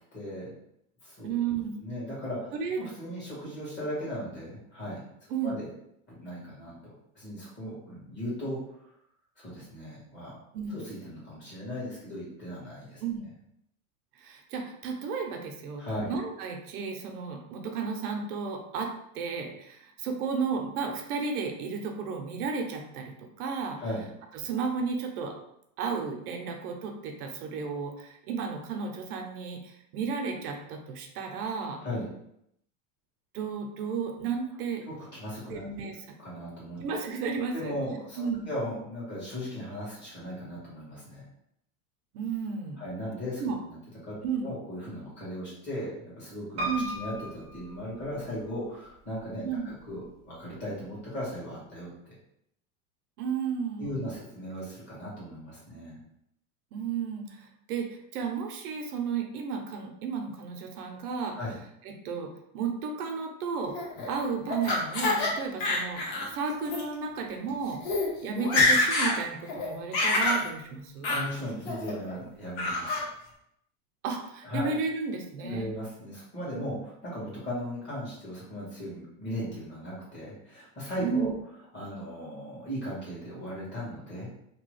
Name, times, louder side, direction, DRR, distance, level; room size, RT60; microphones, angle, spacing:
voice 1, 0.1-0.5 1.0-1.4 1.8-2.5 2.8-5.0 5.4-5.7 6.1-8.6 9.4-10.4 10.7-13.0 15.8-16.1 23.8-24.1 31.8-32.1 34.9-35.9 36.2-37.1 37.5-41.2 42.8-43.8 44.0-51.9 53.8-56.0 61.3-61.6 71.1-73.0 74.4-74.7 75.4-81.3 81.7-84.3, equal, 25° left, -7 dB, 1.4 m, -37 dB
voice 2, 1.2-1.8 2.5-2.8 5.3-5.6 10.5-10.8 13.0-13.3 14.2-23.8 24.4-25.4 25.8-31.8 33.3-34.8 35.5-35.9 36.8-37.7 38.2-38.5 42.1-42.8 43.4-43.6 44.2-44.5 46.6-46.9 49.4-49.7 53.2-54.1 56.7-61.4 61.8-63.8 64.1-67.8 68.2-71.2 74.0-75.7 81.0-81.3, right 5 dB, 90° right, 3 dB, 0.8 m, -33 dB
Piano, 46.6-48.6 49.2-49.9 50.2-50.3 50.5-50.6, right 1 dB, 15° right, 0.3 m, -36 dB
Laughter, 63.7-65.3 65.6-66.3 66.6-66.8 67.5-67.6 67.8-68.1 68.4-69.2 69.5-70.4 71.0-71.2 71.7-72.1 72.6-73.0, left 2 dB, 55° left, 0.9 m, -26 dB
2.9 x 2.3 x 3.1 m, 0.76 s
supercardioid pair, 160°, 44 cm